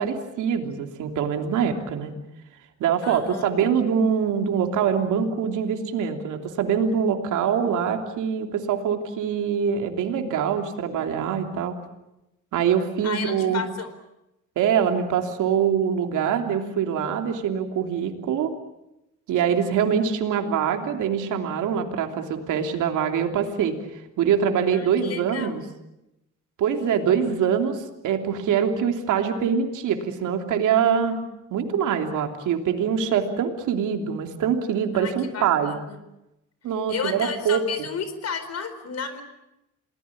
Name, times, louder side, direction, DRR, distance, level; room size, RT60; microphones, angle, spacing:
voice 1, 0.0-2.1 2.8-11.8 12.5-13.6 14.5-18.5 19.3-23.7 24.2-25.6 26.6-31.2 31.5-35.8 36.6-37.6, right 7 dB, 85° right, 5 dB, 3.2 m, -24 dB
voice 2, 3.0-3.6 13.0-13.9 24.7-25.6 34.9-36.0 36.9-39.2, left 6 dB, 55° left, 11 dB, 4.5 m, -32 dB
28.5 x 19.5 x 8.6 m, 0.90 s
cardioid pair, 90°, 30 cm